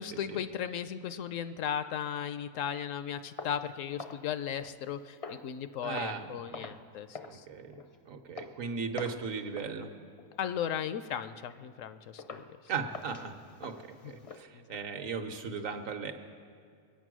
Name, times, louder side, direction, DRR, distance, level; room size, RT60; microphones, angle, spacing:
voice 1, 0.0-7.4 10.4-12.4 14.0-14.2 14.5-14.6, left 9 dB, 70° left, 11 dB, 0.9 m, -36 dB
sound 1, 3.4-4.9 5.2-5.6 5.9-6.3 6.5-6.9 7.1-7.4 7.7-8.0 8.4-8.6 9.0-9.3 9.5-9.8 10.2-10.4 10.9-11.0 11.5-11.6 12.2-12.5 12.9-14.4, left 4 dB, 40° left, 0.5 m, -45 dB
voice 2, 5.8-6.8 7.2-9.9 12.7-13.3 13.6-16.1, right 5 dB, 70° right, 5 dB, 1.3 m, -37 dB
22.5 x 8.5 x 6.1 m, 2.3 s
omnidirectional pair, 1.5 m